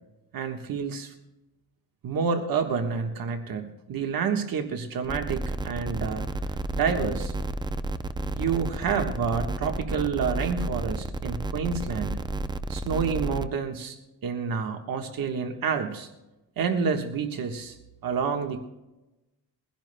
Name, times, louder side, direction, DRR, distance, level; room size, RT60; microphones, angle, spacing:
voice 1, 0.3-1.1 2.0-6.2 6.7-7.3 8.4-12.2 12.7-14.0 14.2-16.1 16.6-17.8 18.0-18.6, right 6 dB, 65° right, 4 dB, 1.4 m, -28 dB
sound 1, 5.0-13.4, right 2 dB, 10° right, 0.5 m, -31 dB
22.0 x 16.0 x 2.2 m, 1.0 s
cardioid pair, 120°, 38 cm